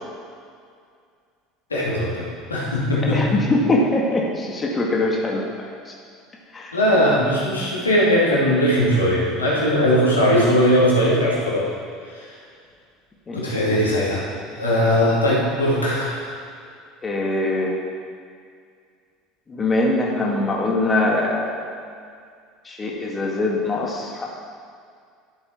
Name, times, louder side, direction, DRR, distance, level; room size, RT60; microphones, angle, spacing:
voice 1, 1.7-3.4 6.7-11.7 12.1-12.3 13.3-14.2 14.6-16.3, equal, 85° left, -6 dB, 2.5 m, -19 dB
voice 2, 3.1-5.4 5.9-6.0 6.5-6.7 13.3-13.5 17.0-17.8 19.5-21.7 22.7-24.3, left 2 dB, 25° left, -2 dB, 1.8 m, -22 dB
12.5 x 7.8 x 4.5 m, 2.2 s
figure-of-eight pair, 70°, 0 cm